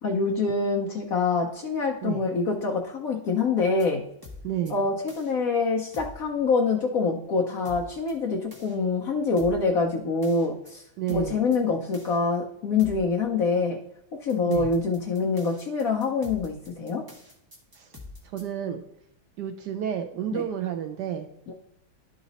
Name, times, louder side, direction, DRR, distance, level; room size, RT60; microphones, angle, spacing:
voice 1, 0.0-4.1 4.7-10.8 11.1-13.8 14.2-17.1 20.3-20.4 21.5-21.6, left 4 dB, 65° left, 1 dB, 0.9 m, -25 dB
sound 1, 3.6-3.9 4.2-4.7 5.1-5.3 5.9-6.2 7.6-8.1 8.5-8.7 9.4-9.7 10.2-10.7 11.1-11.6 11.9-12.2 12.8-13.1 14.3-18.4, left 2 dB, 15° right, 1.2 m, -44 dB
voice 2, 4.4-4.8 11.0-11.4 14.4-14.7 17.7-17.9 18.2-18.8 19.4-21.3, right 10 dB, 70° right, 6 dB, 1.0 m, -30 dB
11.5 x 4.0 x 4.0 m, 0.80 s
omnidirectional pair, 2.2 m